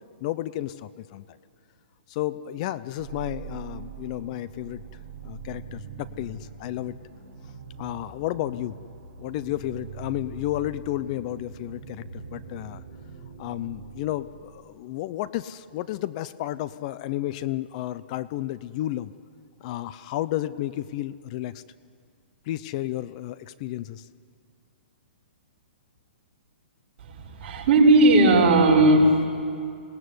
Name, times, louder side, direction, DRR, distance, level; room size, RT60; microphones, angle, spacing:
voice 1, 0.2-1.4 2.1-4.8 5.2-7.0 7.8-8.8 9.2-12.8 13.4-19.1 19.6-21.6 22.5-24.1, left 14 dB, 40° left, 15 dB, 0.6 m, -32 dB
sound 1, 3.0-14.8, right 6 dB, 60° right, 5.5 m, -43 dB
voice 2, 27.0-29.2, right 2 dB, 45° right, -3 dB, 5.8 m, -17 dB
27.0 x 19.0 x 9.6 m, 2.3 s
hypercardioid pair, 150°, 6 cm